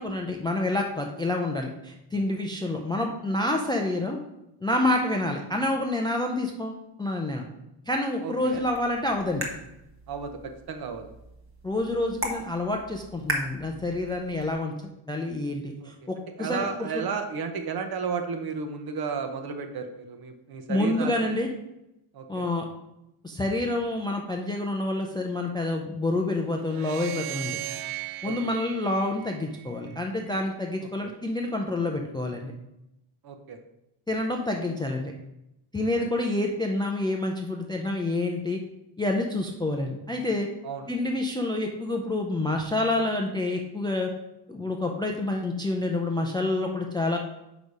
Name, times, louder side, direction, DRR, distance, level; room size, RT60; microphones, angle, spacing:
voice 1, 0.0-4.2 4.6-7.4 7.9-9.5 11.6-14.7 15.1-16.7 16.9-17.0 20.7-21.5 22.3-22.7 23.2-27.6 28.2-32.5 34.1-35.1 35.7-38.6 39.0-40.5 40.9-44.1 44.5-47.2, left 2 dB, 10° left, 2 dB, 0.4 m, -28 dB
voice 2, 8.2-8.6 10.1-11.0 15.8-15.9 16.4-21.4 22.1-22.5 28.2-28.5 31.0-31.1 33.2-33.6 40.6-40.8, right 5 dB, 50° right, 6 dB, 0.9 m, -33 dB
sound 1, 8.5-14.5, right 1 dB, 25° right, 1.0 m, -38 dB
sound 2, 26.7-30.0, right 15 dB, 85° right, 0.6 m, -37 dB
6.2 x 5.0 x 5.3 m, 0.88 s
cardioid pair, 180°, 48 cm